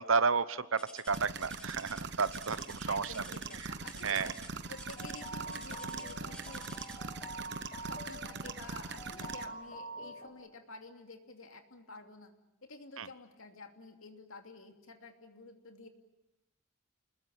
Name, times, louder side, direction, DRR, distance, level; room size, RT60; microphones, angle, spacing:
voice 1, 0.0-3.1 4.0-4.3 13.0-13.1, right 5 dB, 75° right, 15 dB, 1.1 m, -31 dB
sound 1, 0.8-7.2 8.1-8.4 8.9-9.0 9.7-9.8, left 1 dB, 5° left, 1.6 m, -53 dB
sound 2, 1.1-9.5, right 4 dB, 55° right, 1.1 m, -42 dB
voice 2, 2.8-4.3 4.7-6.6 7.4-7.5 7.8-12.3 12.6-15.9, left 3 dB, 80° left, 5 dB, 2.8 m, -50 dB
sound 3, 4.6-10.3, right 2 dB, 30° left, 4.6 m, -46 dB
29.0 x 21.0 x 8.9 m, 0.90 s
head